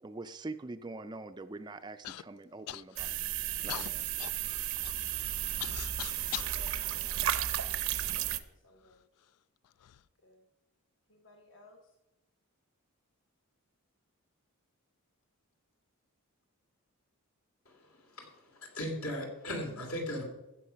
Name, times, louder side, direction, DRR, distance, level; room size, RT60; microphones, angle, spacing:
voice 1, 0.0-3.1 3.6-4.0, right 2 dB, 20° right, 9 dB, 0.4 m, -44 dB
Human voice / Cough, 2.0-2.2 2.7-3.2 3.7-6.6 7.3-8.1 8.8-8.9 9.6-10.0, left 13 dB, 85° left, 0.4 m, -42 dB
sound 1, 3.0-8.4, right 11 dB, 70° right, 0.6 m, -33 dB
voice 2, 6.5-8.1 8.4-9.3 10.2-10.5 11.1-12.0, left 1 dB, 55° left, 1 dB, 1.1 m, -59 dB
voice 3, 17.7-20.2, left 1 dB, 70° left, 2 dB, 2.7 m, -38 dB
15.0 x 6.5 x 5.6 m, 0.98 s
head